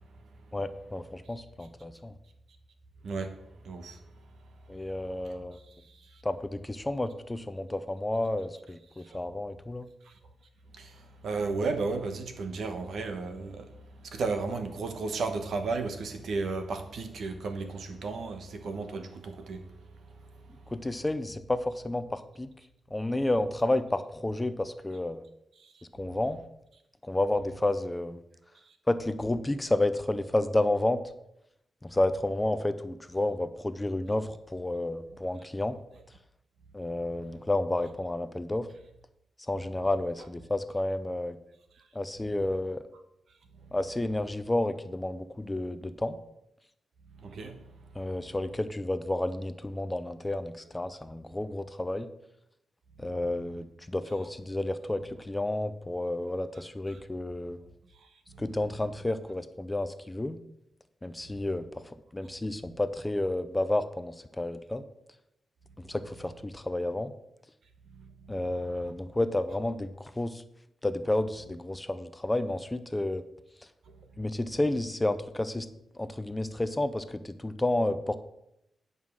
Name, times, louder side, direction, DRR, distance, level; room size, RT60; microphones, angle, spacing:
voice 1, 0.5-2.1 4.7-5.6 6.2-9.9 20.7-22.5 22.9-25.2 26.0-26.4 27.0-28.2 28.9-31.0 31.8-35.8 36.7-38.7 39.5-41.4 41.9-42.8 43.7-46.2 47.9-52.1 53.0-57.6 58.4-60.4 61.0-61.7 62.1-64.8 65.9-67.1 68.3-70.4 70.8-73.2 74.2-75.7 76.0-78.2, left 1 dB, 15° left, 0.6 m, -31 dB
voice 2, 3.0-4.0 9.0-9.2 10.7-13.7 14.0-19.7 43.6-43.7 47.2-47.6 56.9-57.0 58.3-58.4 61.3-61.5 67.9-68.4, right 4 dB, 70° right, 1.2 m, -34 dB
9.4 x 5.5 x 6.3 m
wide cardioid pair, 115°, 0 cm